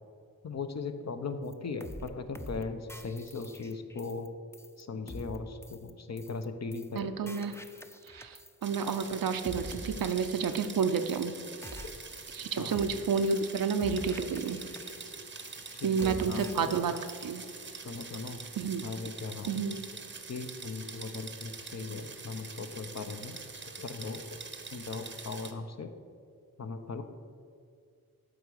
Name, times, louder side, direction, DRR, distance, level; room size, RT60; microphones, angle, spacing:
voice 1, 0.4-4.3 4.8-7.3 11.8-11.9 12.6-12.8 15.7-16.9 17.7-18.4 18.8-19.6 20.3-24.4 24.7-25.9 26.6-27.0, left 4 dB, 50° left, 8 dB, 0.7 m, -39 dB
sound 1, 1.5-1.6 1.8-2.1 2.4-2.6 2.9-4.3 4.5-4.8 5.1-5.4 5.6-5.9 6.2-6.5 6.7-7.0 7.3-8.6 8.9-9.2 9.4-10.8 11.1-11.4 11.6-12.5 12.7-13.0 13.3-13.5 13.8-15.2 15.4-15.7 16.0-16.8 17.1-17.4, equal, 5° left, 0.5 m, -45 dB
voice 2, 6.9-7.5 8.1-11.3 12.3-14.6 15.8-16.9 17.2-17.4 18.6-18.9 19.5-19.8, right 6 dB, 70° right, 9 dB, 0.6 m, -30 dB
sound 2, 8.6-25.5, right 4 dB, 30° right, 0.7 m, -45 dB
7.8 x 3.8 x 6.4 m, 2.3 s
cardioid pair, 45°, 36 cm